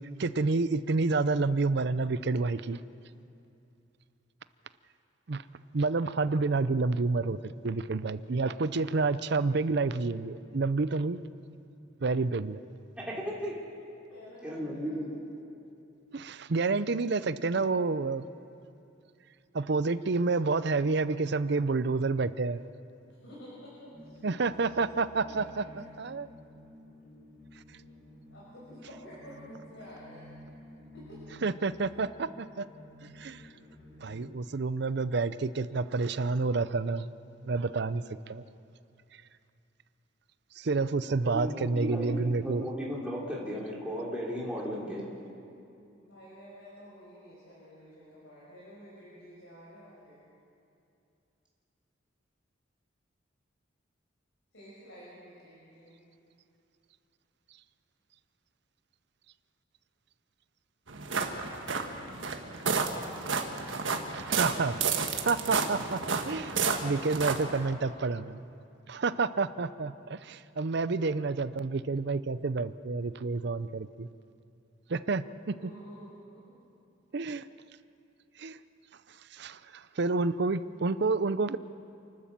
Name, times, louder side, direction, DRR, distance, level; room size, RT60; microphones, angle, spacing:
voice 1, 0.2-2.8 5.3-5.4 5.7-11.2 12.0-12.6 16.1-18.3 19.5-22.6 24.2-25.6 26.0-26.3 31.4-32.6 33.2-33.4 34.0-37.1 37.4-38.4 40.6-42.7 64.1-64.8 65.1-68.4 68.9-74.1 74.9-75.5 77.1-77.4 78.4-78.6 79.3-81.6, right 3 dB, 60° right, 14 dB, 0.6 m, -29 dB
voice 2, 13.0-13.5 14.4-15.1 41.2-45.1, equal, 5° right, -6 dB, 3.1 m, -35 dB
voice 3, 14.1-15.2 23.1-24.2 24.6-24.7 25.2-25.7 28.3-30.3 30.9-31.2 46.0-50.2 54.5-56.0 75.5-76.4, equal, 80° left, -8 dB, 6.1 m, -50 dB
sound 1, 23.9-34.2, left 1 dB, 50° left, 5.4 m, -51 dB
sound 2, 60.9-67.7, right 5 dB, 75° right, 1.6 m, -31 dB
28.5 x 12.5 x 7.5 m, 2.6 s
head